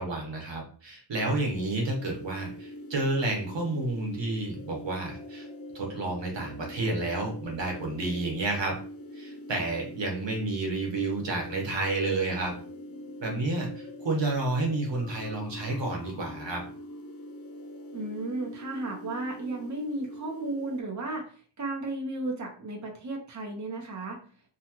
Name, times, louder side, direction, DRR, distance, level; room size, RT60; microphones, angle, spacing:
voice 1, 0.0-5.5 5.7-8.8 9.1-12.6 13.2-16.6, right 2 dB, 80° right, 0 dB, 1.0 m, -30 dB
synth pad loop (d minor), 1.1-20.8, left 1 dB, 55° left, 0.5 m, -43 dB
voice 2, 17.9-21.3 21.6-24.2, right 2 dB, 40° right, 0 dB, 0.8 m, -34 dB
2.8 x 2.3 x 2.8 m, 0.41 s
wide cardioid pair, 80°, 43 cm